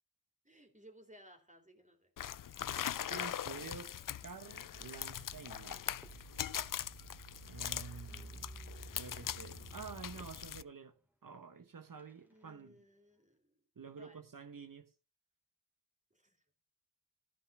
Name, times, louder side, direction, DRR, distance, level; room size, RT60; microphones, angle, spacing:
voice 1, 0.4-2.8 8.1-9.8 12.2-13.6 14.0-14.2 16.1-16.4, equal, 20° right, 3.4 m, -62 dB
sound 1, 2.2-10.6, left 10 dB, 65° left, 0.5 m, -42 dB
voice 2, 3.1-3.9 4.2-5.9 7.4-8.5 8.9-10.9 11.2-12.8 13.8-14.9, right 5 dB, 70° right, 1.1 m, -49 dB
Fireworks, 3.2-13.4, right 1 dB, 5° right, 2.9 m, -68 dB
sound 2, 4.7-10.3, right 3 dB, 45° right, 2.3 m, -52 dB
15.0 x 5.5 x 5.4 m
wide cardioid pair, 55°, 35 cm